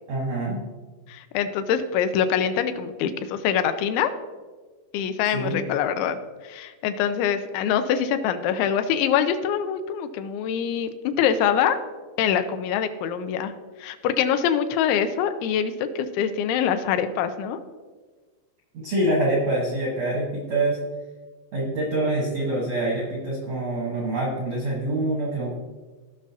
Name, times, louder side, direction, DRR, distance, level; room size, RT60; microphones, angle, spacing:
voice 1, 0.1-0.6 5.3-5.6 18.7-20.8 21.5-25.5, right 1 dB, 80° right, -3 dB, 1.4 m, -25 dB
voice 2, 1.1-4.1 4.9-6.2 6.5-11.8 12.2-13.5 13.8-17.6, left 8 dB, 85° left, 9 dB, 3.0 m, -24 dB
16.5 x 6.0 x 2.8 m, 1.4 s
omnidirectional pair, 5.2 m